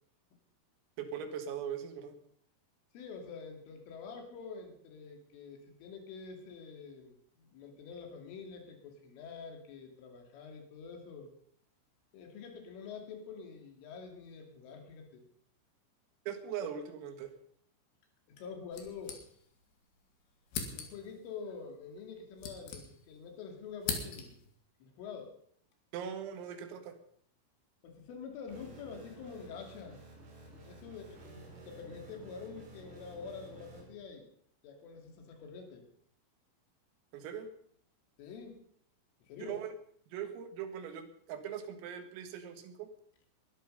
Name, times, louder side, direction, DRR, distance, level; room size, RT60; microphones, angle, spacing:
voice 1, 1.0-2.2 16.3-17.3 25.9-27.0 37.1-37.5 39.4-39.7 40.1-42.9, right 8 dB, 85° right, 7 dB, 4.5 m, -40 dB
voice 2, 2.9-11.3 12.1-15.2 18.3-19.2 20.8-24.4 24.8-25.3 27.8-30.0 30.3-34.3 34.6-35.8 38.2-38.6 39.2-39.6, left 5 dB, 75° left, 3 dB, 5.0 m, -47 dB
sound 1, 18.7-19.7 20.0-20.1 20.5-21.2 22.0-23.3 23.5-24.5, left 6 dB, 55° left, 3.7 m, -41 dB
sound 2, 28.5-33.8, right 2 dB, 60° right, 6.9 m, -53 dB
22.0 x 11.5 x 5.5 m, 0.62 s
omnidirectional pair, 5.9 m